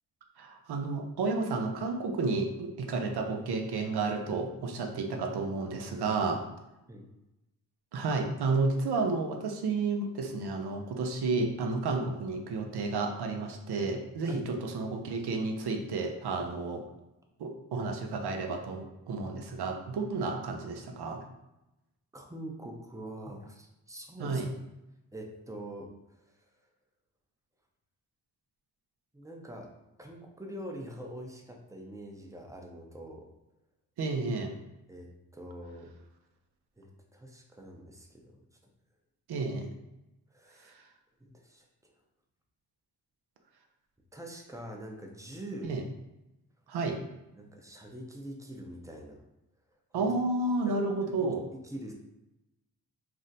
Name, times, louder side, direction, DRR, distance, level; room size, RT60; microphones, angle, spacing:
voice 1, 0.4-6.4 7.9-16.9 17.4-21.2 24.2-24.5 34.0-34.5 39.3-39.7 40.6-40.7 45.6-45.8 46.7-47.0 49.9-51.5, right 3 dB, 70° right, 3 dB, 0.6 m, -31 dB
voice 2, 22.1-24.4 25.1-25.9 26.2-26.3 29.1-29.7 30.0-33.3 34.9-35.9 36.8-38.4 40.3-40.7 41.2-41.9 44.1-45.8 47.3-49.2 50.0-50.1 50.7-50.9 51.2-51.9, right 1 dB, 10° right, 2 dB, 0.6 m, -44 dB
2.5 x 2.1 x 3.9 m, 0.93 s
cardioid pair, 50°, 40 cm